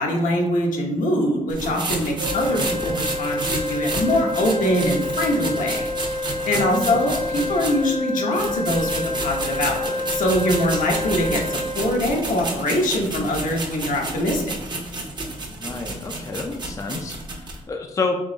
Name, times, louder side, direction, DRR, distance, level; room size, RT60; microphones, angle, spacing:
voice 1, 0.0-5.8 6.5-8.9 9.2-14.5, left 1 dB, 80° left, 0 dB, 0.9 m, -23 dB
sound 1, 1.5-7.9 8.3-17.6, right 2 dB, 35° right, 0.8 m, -31 dB
sound 2, 2.2-11.9, left 2 dB, 65° right, 0.7 m, -28 dB
voice 2, 6.5-7.2 15.5-18.2, left 3 dB, 25° left, 2 dB, 0.4 m, -30 dB
3.7 x 3.0 x 3.8 m, 0.95 s
cardioid pair, 120°, 13 cm